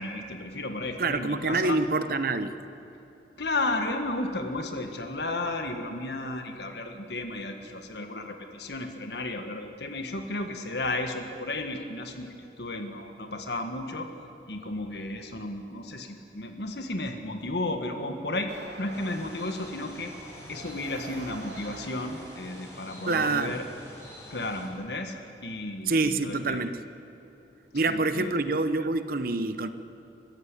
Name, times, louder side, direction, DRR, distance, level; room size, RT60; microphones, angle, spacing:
voice 1, 0.0-1.8 3.4-14.1 14.5-18.5 18.8-20.1 20.5-23.7 24.3-25.2 25.4-26.6 27.9-28.4, left 2 dB, 70° left, 5 dB, 1.7 m, -33 dB
voice 2, 1.0-2.6 23.1-23.6 25.9-26.8 27.7-29.7, right 3 dB, 55° right, 11 dB, 1.0 m, -26 dB
sound 1, 18.5-24.2, right 2 dB, 90° right, 2.6 m, -47 dB
sound 2, 18.9-24.7, equal, 15° left, 5.5 m, -47 dB
23.5 x 15.0 x 9.9 m, 3.0 s
head